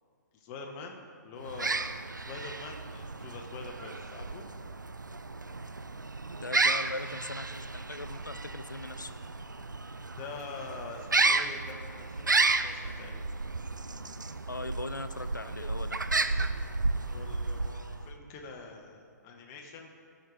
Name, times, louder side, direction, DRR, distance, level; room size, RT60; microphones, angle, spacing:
voice 1, 0.3-1.7 2.3-4.4 9.0-9.1 10.2-13.2 17.1-19.9, left 4 dB, 25° left, 2 dB, 1.0 m, -44 dB
sound 1, 1.4-18.2, right 3 dB, 85° right, 0.4 m, -32 dB
voice 2, 6.3-9.2 14.5-16.0, left 2 dB, 90° left, 11 dB, 0.5 m, -40 dB
12.5 x 5.3 x 4.6 m, 2.2 s
figure-of-eight pair, 125°, 10 cm